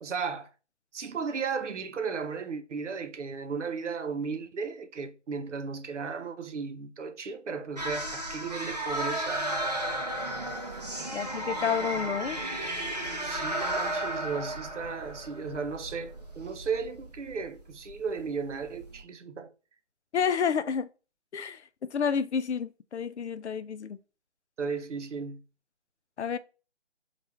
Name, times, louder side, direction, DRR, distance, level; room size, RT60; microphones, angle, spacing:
voice 1, 0.0-0.5 0.9-9.9 13.2-19.5 24.6-25.4, right 5 dB, 85° right, 0.7 m, -35 dB
sound 1, 7.8-19.0, right 1 dB, 35° right, 0.4 m, -34 dB
voice 2, 11.1-12.4 20.1-20.9 21.3-24.0 26.2-26.4, left 7 dB, 70° left, 0.5 m, -30 dB
3.4 x 2.4 x 4.4 m
figure-of-eight pair, 170°, 35 cm